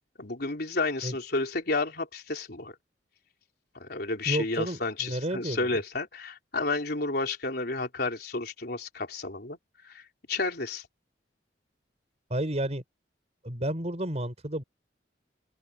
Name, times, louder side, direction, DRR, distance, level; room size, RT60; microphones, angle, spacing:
voice 1, 0.2-2.7 3.7-9.6 9.8-10.0 10.3-10.9, left 3 dB, 60° left, 4.1 m, -31 dB
voice 2, 4.3-5.7 12.3-12.8 13.4-14.6, right 1 dB, 40° right, 5.5 m, -31 dB
open air
head